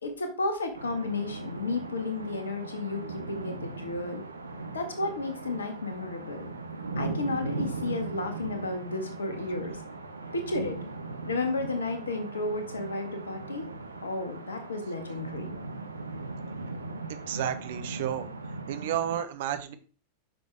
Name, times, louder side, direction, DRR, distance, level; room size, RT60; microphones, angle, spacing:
voice 1, 0.0-4.2 4.7-6.5 6.9-9.8 10.3-10.8 11.2-13.7 14.0-15.5, left 2 dB, 70° left, 6 dB, 1.7 m, -32 dB
sound 1, 0.7-19.2, right 3 dB, 80° right, 1.0 m, -39 dB
voice 2, 17.1-18.3 18.7-19.7, right 10 dB, 55° right, 10 dB, 1.0 m, -31 dB
9.0 x 6.4 x 3.5 m, 0.39 s
figure-of-eight pair, 90°, 0 cm